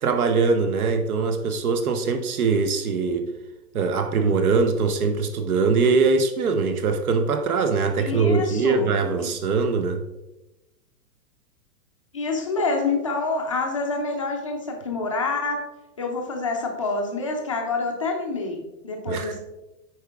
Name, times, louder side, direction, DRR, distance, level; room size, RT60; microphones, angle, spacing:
voice 1, 0.0-3.3 3.7-10.0 19.1-19.4, right 4 dB, 60° right, 7 dB, 1.0 m, -22 dB
voice 2, 8.0-8.9 9.2-9.3 12.1-15.6 16.0-19.4, left 3 dB, 20° left, 1 dB, 0.5 m, -27 dB
9.0 x 4.9 x 3.4 m, 0.98 s
hypercardioid pair, 175°, 49 cm